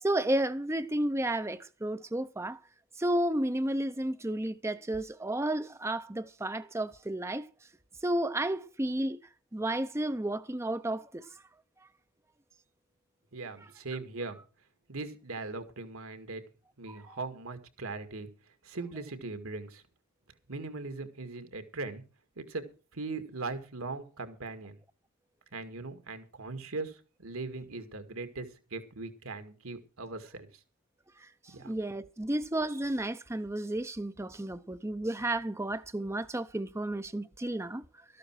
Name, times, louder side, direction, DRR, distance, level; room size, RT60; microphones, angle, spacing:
voice 1, 0.0-2.6 3.0-7.5 8.0-9.2 9.5-11.4 16.9-17.2 31.2-38.0, right 1 dB, 10° right, 0.6 m, -32 dB
voice 2, 13.3-14.4 14.9-16.4 16.8-18.3 18.6-19.8 20.5-22.0 22.4-22.6 22.9-24.8 25.5-30.5 31.5-31.8, right 3 dB, 75° right, 2.2 m, -40 dB
13.5 x 12.0 x 4.8 m
head